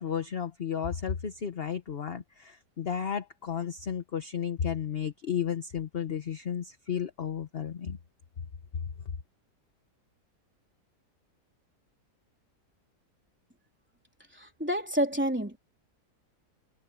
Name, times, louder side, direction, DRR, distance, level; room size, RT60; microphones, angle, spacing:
voice 1, 0.0-8.0, left 8 dB, 40° left, 1.1 m, -33 dB
voice 2, 14.3-15.6, equal, 5° right, 3.5 m, -29 dB
omnidirectional pair, 1.8 m